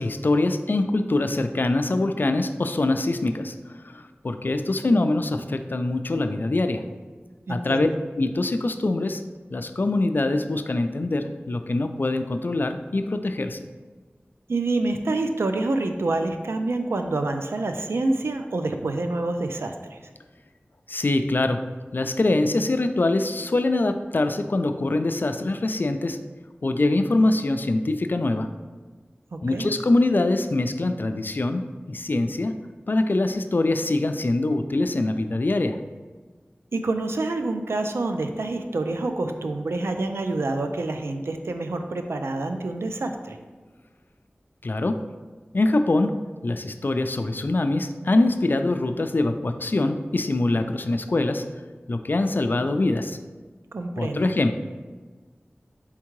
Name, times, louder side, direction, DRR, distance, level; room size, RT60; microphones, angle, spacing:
voice 1, 0.0-3.5 3.9-6.8 7.5-7.9 8.2-9.2 9.5-13.6 20.9-21.6 21.9-26.2 26.6-28.5 29.4-32.5 32.9-35.8 44.6-45.0 45.5-46.2 46.4-51.4 51.9-53.2 54.0-54.5, left 2 dB, 55° left, 8 dB, 0.3 m, -23 dB
voice 2, 7.5-7.9 14.5-20.0 29.3-29.7 36.7-43.4 53.7-54.3, right 2 dB, 85° right, 6 dB, 0.3 m, -27 dB
4.3 x 3.6 x 3.1 m, 1.4 s
wide cardioid pair, 40°, 4 cm